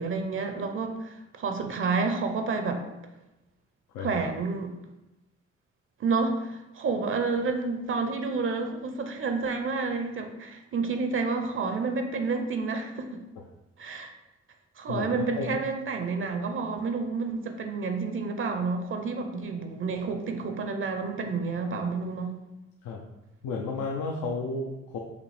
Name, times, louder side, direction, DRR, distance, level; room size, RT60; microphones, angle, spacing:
voice 1, 0.0-2.8 4.0-4.7 6.0-13.2 13.8-14.1 14.8-22.3, right 4 dB, 45° right, 5 dB, 0.5 m, -29 dB
voice 2, 14.9-15.5 22.8-23.0 23.4-25.0, left 3 dB, 80° left, -1 dB, 0.6 m, -32 dB
5.1 x 2.6 x 3.3 m, 0.96 s
cardioid pair, 90°, 30 cm